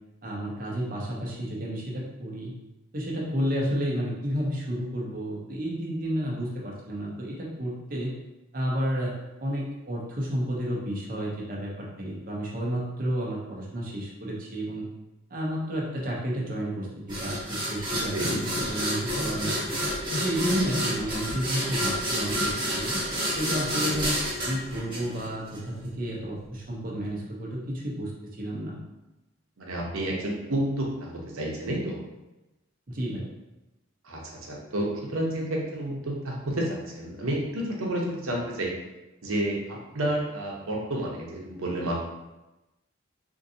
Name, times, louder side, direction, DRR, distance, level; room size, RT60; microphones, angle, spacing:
voice 1, 0.2-2.5 2.9-8.2 8.5-14.9 15.3-19.7 20.2-22.9 23.3-24.2 24.5-28.1 28.4-28.8 32.9-33.3, equal, 40° right, -3 dB, 0.7 m, -31 dB
sound 1, 17.1-25.6, equal, 20° right, 1.0 m, -29 dB
voice 2, 29.6-32.0 34.0-34.9 35.1-38.7 39.2-42.0, right 1 dB, 80° right, -2 dB, 0.8 m, -30 dB
3.8 x 2.6 x 2.7 m, 1.0 s
head